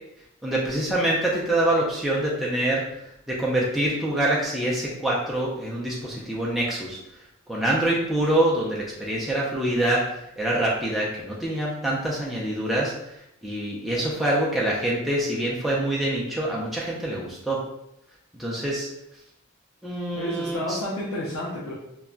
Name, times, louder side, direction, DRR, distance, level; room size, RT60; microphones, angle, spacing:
voice 1, 0.4-7.0 7.5-17.6 18.3-18.9 19.8-20.8, right 1 dB, ahead, -5 dB, 0.4 m, -25 dB
voice 2, 20.1-21.7, left 1 dB, 85° left, -6 dB, 0.6 m, -30 dB
2.2 x 2.1 x 3.7 m, 0.81 s
head